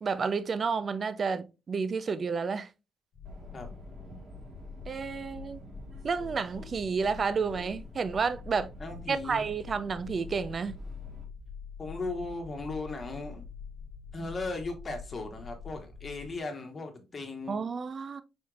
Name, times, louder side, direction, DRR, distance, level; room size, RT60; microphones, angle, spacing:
voice 1, 0.0-2.7 4.9-5.6 6.0-8.7 9.1-10.7 17.5-18.2, right 5 dB, 45° right, 0.5 m, -30 dB
sound 1, 3.1-16.4, left 5 dB, 60° left, 0.9 m, -46 dB
Subway metro underground, 3.2-11.2, right 2 dB, 60° right, 1.7 m, -49 dB
voice 2, 8.8-9.4 11.8-13.5 14.1-17.6, left 3 dB, 35° left, 1.3 m, -37 dB
4.6 x 4.3 x 2.4 m
cardioid pair, 90°, 0 cm